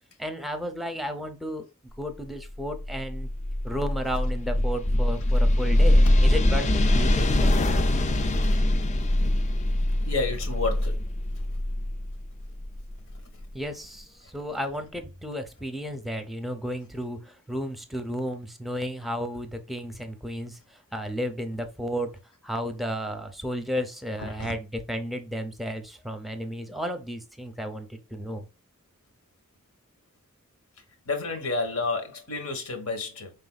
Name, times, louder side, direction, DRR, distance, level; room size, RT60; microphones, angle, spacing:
voice 1, 0.2-1.6 2.0-3.3 3.6-7.5 13.5-22.1 22.4-28.5, equal, ahead, 0.7 m, -33 dB
sound 1, 2.7-13.4, left 1 dB, 35° left, 0.5 m, -23 dB
voice 2, 10.0-11.0 11.3-11.4 24.2-24.5 31.0-33.3, left 3 dB, 75° left, 1.3 m, -30 dB
5.3 x 3.4 x 2.3 m
head